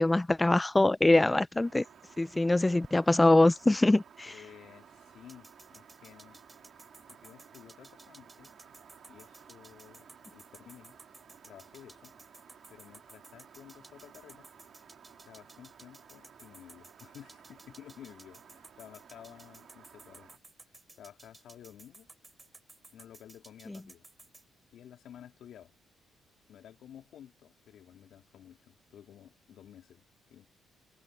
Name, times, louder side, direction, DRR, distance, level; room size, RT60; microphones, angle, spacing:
voice 1, 0.0-1.8 2.2-4.3, left 2 dB, 15° left, 0.6 m, -23 dB
sound 1, 1.5-20.4, right 8 dB, 60° right, 4.1 m, -56 dB
voice 2, 4.2-6.4 7.1-8.5 9.1-11.0 11.4-12.2 12.7-14.5 15.3-20.3 21.0-22.1 22.9-24.1 24.7-25.7 26.5-30.0 30.3-30.5, left 10 dB, 70° left, 3.7 m, -53 dB
sound 2, 5.3-24.4, right 2 dB, 20° right, 3.8 m, -55 dB
cardioid pair, 90°, 0 cm